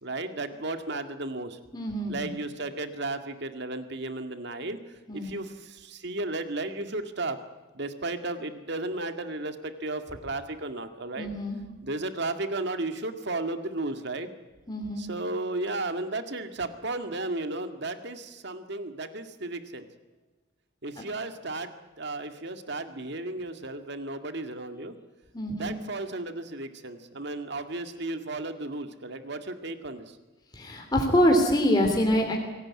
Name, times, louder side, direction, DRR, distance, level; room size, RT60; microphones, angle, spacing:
voice 1, 0.0-1.6 2.1-4.8 5.1-7.4 7.7-11.3 11.8-14.3 15.0-19.9 20.8-21.7 22.0-24.9 25.5-30.2, right 2 dB, 55° right, 8 dB, 2.0 m, -34 dB
voice 2, 1.7-2.3 5.1-5.3 11.2-11.6 14.7-15.0 25.3-25.7 30.5-32.4, equal, 20° left, 1 dB, 3.0 m, -25 dB
24.5 x 17.5 x 9.7 m, 1.2 s
head